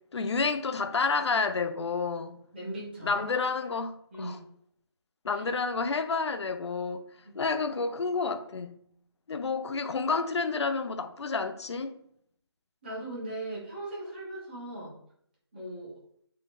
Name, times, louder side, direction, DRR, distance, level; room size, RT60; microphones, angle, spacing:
voice 1, 0.1-2.4 3.0-4.4 5.2-7.0 7.4-8.8 9.3-12.0, left 4 dB, 90° left, 0.4 m, -30 dB
voice 2, 2.5-3.3 4.1-4.4 5.3-5.4 12.8-14.9 15.5-16.0, right 1 dB, 25° right, 1.1 m, -38 dB
3.7 x 3.1 x 2.6 m
figure-of-eight pair, 175°, 14 cm